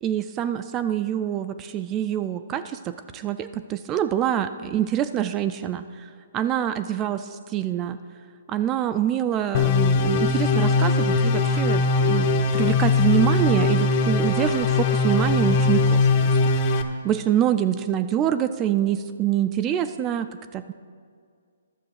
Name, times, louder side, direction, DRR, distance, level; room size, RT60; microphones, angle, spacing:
voice 1, 0.0-6.1 6.3-8.0 8.5-20.7, right 10 dB, 20° right, 10 dB, 0.3 m, -26 dB
sound 1, 9.5-16.8, left 3 dB, 40° left, 0.8 m, -20 dB
11.5 x 6.8 x 6.5 m, 2.1 s
hypercardioid pair, 160°, 0 cm